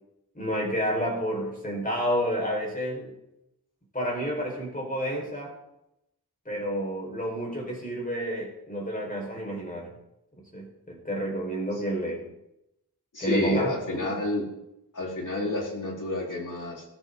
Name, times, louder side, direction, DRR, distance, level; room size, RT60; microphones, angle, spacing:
voice 1, 0.3-3.1 3.9-5.6 6.4-9.9 10.4-12.2 13.2-14.1, equal, 20° left, -1 dB, 5.2 m, -30 dB
voice 2, 13.1-14.5 14.9-16.8, left 2 dB, 50° left, -1 dB, 4.4 m, -30 dB
17.0 x 13.5 x 4.0 m, 0.86 s
wide cardioid pair, 90°, 39 cm